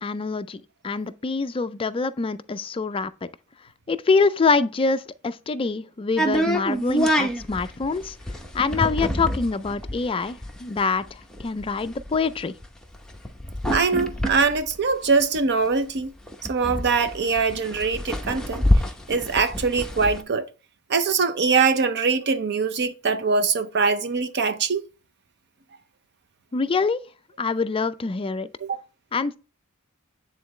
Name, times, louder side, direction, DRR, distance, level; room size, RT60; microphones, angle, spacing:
voice 1, 0.0-3.1 3.9-8.2 8.5-12.5 26.5-27.0 27.4-28.5 29.1-29.4, left 4 dB, 25° left, 0.4 m, -25 dB
sound 1, 6.2-15.7 16.0-16.1 16.3-20.2, equal, 5° left, 0.8 m, -26 dB
voice 2, 13.7-16.1 16.5-18.6 19.1-20.5 20.9-24.9 28.6-28.8, right 4 dB, 50° right, 0.6 m, -22 dB
9.3 x 3.9 x 3.1 m
head